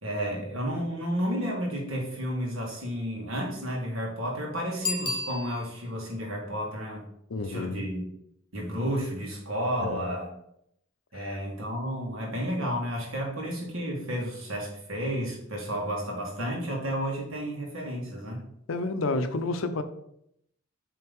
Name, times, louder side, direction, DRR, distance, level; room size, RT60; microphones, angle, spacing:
voice 1, 0.0-7.0 7.4-8.0 8.5-10.3 11.1-18.4, equal, 75° right, 1.9 m, -32 dB
Bicycle bell, 4.8-6.0 11.4-11.5, left 3 dB, 20° left, 0.9 m, -32 dB
voice 2, 7.3-7.8 9.8-10.0 11.1-11.4 18.7-19.8, left 3 dB, 80° left, 0.6 m, -30 dB
7.7 x 3.5 x 3.6 m
head